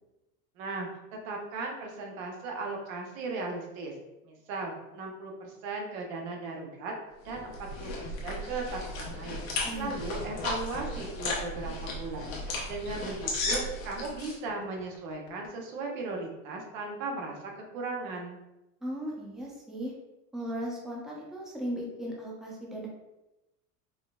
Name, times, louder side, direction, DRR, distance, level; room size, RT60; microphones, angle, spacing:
voice 1, 0.6-3.9 4.2-6.9 7.2-9.4 9.8-18.4, right 3 dB, 80° right, 0 dB, 0.9 m, -37 dB
sound 1, 7.3-14.4, left 2 dB, 90° left, 1.0 m, -35 dB
sound 2, 7.4-8.2 9.1-10.5 11.6-13.0 14.5-15.5, left 5 dB, 40° left, 0.5 m, -50 dB
voice 2, 9.6-10.0 18.8-19.9 20.3-22.9, equal, ahead, -3 dB, 0.6 m, -37 dB
4.6 x 2.0 x 2.3 m, 0.97 s
supercardioid pair, 110°, 39 cm